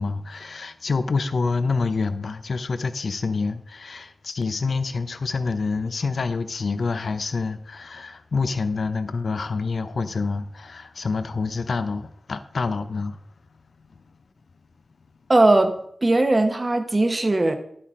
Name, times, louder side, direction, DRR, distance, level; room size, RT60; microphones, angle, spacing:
voice 1, 0.0-13.2, left 4 dB, 65° left, 0.7 m, -27 dB
voice 2, 15.3-15.7 16.0-17.6, right 2 dB, 30° right, 1.1 m, -19 dB
11.0 x 8.6 x 3.7 m
wide cardioid pair, 70°, 0 cm